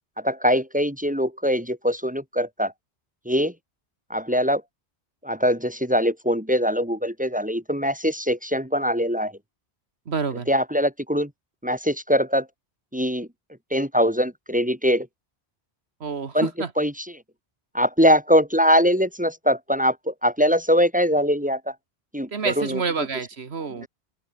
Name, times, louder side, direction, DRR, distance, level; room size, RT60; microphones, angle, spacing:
voice 1, 0.2-2.7 3.3-3.5 4.1-4.6 5.2-9.3 10.5-11.3 11.6-12.5 12.9-13.3 13.7-15.1 16.3-16.5 16.8-17.1 17.7-21.7 22.1-22.8 23.8-23.9, equal, 5° right, 2.3 m, -22 dB
voice 2, 10.1-10.5 16.0-16.7 22.3-23.9, right 5 dB, 70° right, 1.8 m, -28 dB
open air
omnidirectional pair, 1.1 m